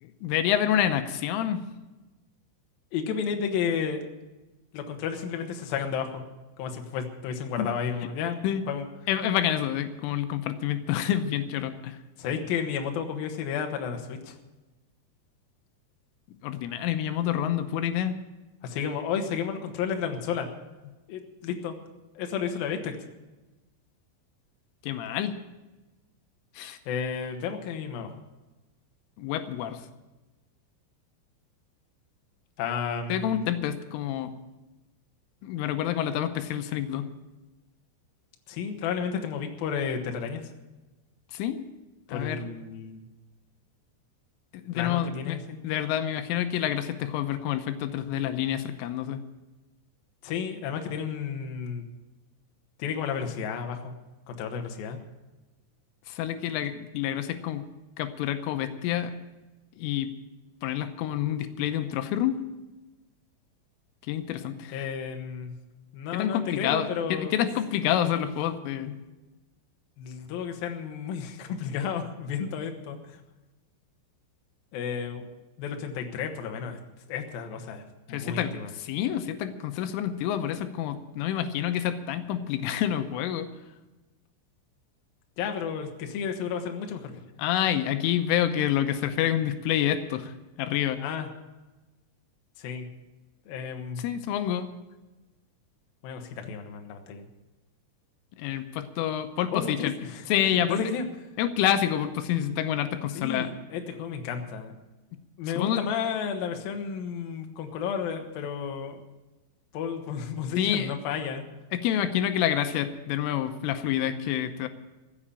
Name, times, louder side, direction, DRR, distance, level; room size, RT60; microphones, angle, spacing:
voice 1, 0.2-1.7 7.6-7.7 8.4-8.6 9.1-12.0 16.4-18.2 24.8-25.4 26.6-26.8 29.2-29.8 33.1-34.3 35.4-37.1 41.3-41.6 42.1-42.5 44.6-49.2 56.1-57.6 58.0-59.1 59.8-60.1 60.6-62.4 64.1-64.8 66.1-69.0 78.1-83.5 87.4-90.3 90.6-91.0 94.0-94.7 98.4-99.9 100.3-100.8 101.4-103.5 105.6-105.8 110.6-110.9 111.7-114.7, left 10 dB, 85° left, 9 dB, 3.3 m, -28 dB
voice 2, 2.9-4.1 4.7-6.2 6.6-8.9 12.2-14.4 18.6-20.5 21.1-21.7 22.1-22.9 26.9-28.2 32.6-33.4 38.5-40.5 42.1-43.0 44.7-45.6 50.2-51.8 52.8-54.0 54.3-55.0 64.7-65.5 65.9-67.3 70.0-73.2 74.7-75.3 75.6-76.8 77.1-78.7 85.4-87.1 91.0-91.3 92.6-92.9 93.5-94.2 96.0-97.2 99.5-101.1 103.2-104.7 105.4-109.0 109.7-111.4, left 7 dB, 65° left, 4 dB, 2.5 m, -32 dB
15.0 x 8.6 x 8.7 m, 1.1 s
omnidirectional pair, 5.7 m